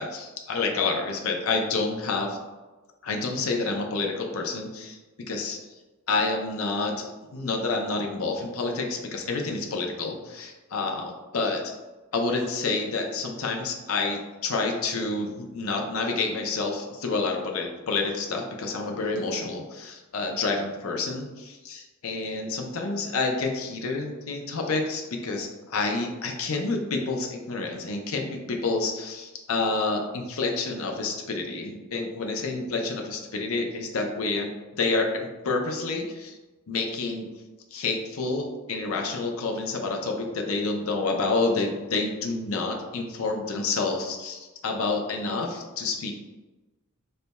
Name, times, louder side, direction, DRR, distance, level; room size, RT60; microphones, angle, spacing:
voice 1, 0.0-2.4 3.0-5.0 5.3-5.6 6.1-11.7 12.1-34.5 34.8-36.4 36.7-37.3 37.7-46.1, left 3 dB, 85° left, 2 dB, 0.6 m, -28 dB
4.0 x 3.3 x 2.2 m, 1.2 s
head